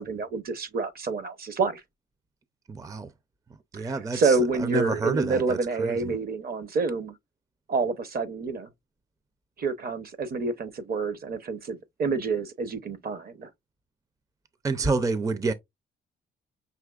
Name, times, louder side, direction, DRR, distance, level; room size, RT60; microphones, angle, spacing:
voice 1, 0.0-1.8 3.7-7.2 7.7-8.7 9.6-13.5, right 4 dB, 50° right, 0.8 m, -28 dB
voice 2, 2.7-3.1 3.7-6.1 14.6-15.5, right 3 dB, 15° right, 0.4 m, -28 dB
5.7 x 3.0 x 2.3 m
cardioid pair, 90°, 20 cm